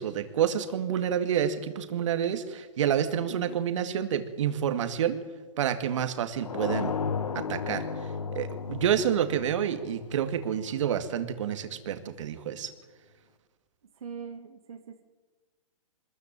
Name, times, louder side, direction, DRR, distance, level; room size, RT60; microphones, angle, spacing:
voice 1, 0.0-5.2 5.6-6.9 7.3-12.7, right 9 dB, 60° right, 9 dB, 2.2 m, -29 dB
sound 1, 6.4-11.1, left 5 dB, 85° left, 2.1 m, -34 dB
voice 2, 14.0-15.0, right 6 dB, 75° right, 6 dB, 2.0 m, -42 dB
24.5 x 14.0 x 8.9 m, 1.4 s
hypercardioid pair, 145°, 18 cm